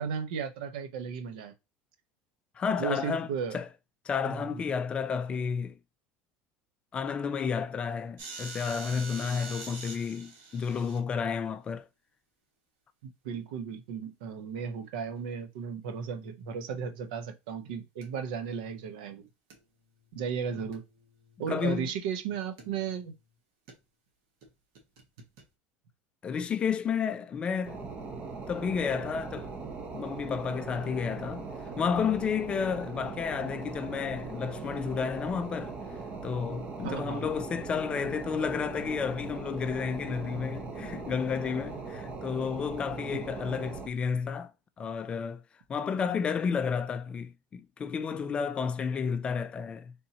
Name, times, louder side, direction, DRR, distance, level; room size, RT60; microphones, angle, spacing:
voice 1, 0.0-1.5 2.8-3.6 4.2-4.6 13.0-19.3 20.1-20.8 21.4-23.1 36.8-37.3, right 7 dB, 85° right, 0.8 m, -35 dB
voice 2, 2.6-3.7 4.0-5.8 6.9-11.9 21.5-21.9 26.2-27.9 28.5-29.5 29.9-31.5 31.8-35.7 36.2-44.5 44.8-45.4 45.7-49.9, left 6 dB, 25° left, 0.3 m, -31 dB
sound 1, 8.2-11.0 15.0-15.2 18.0-18.3 19.5-19.6 20.0-20.1 20.7-21.7 22.6-23.2 23.7-23.8 24.4-24.5 24.8-25.4, right 4 dB, 65° right, 1.5 m, -45 dB
sound 2, 27.6-43.9, right 4 dB, 30° right, 0.9 m, -40 dB
4.1 x 3.5 x 2.8 m
cardioid pair, 145°, 5 cm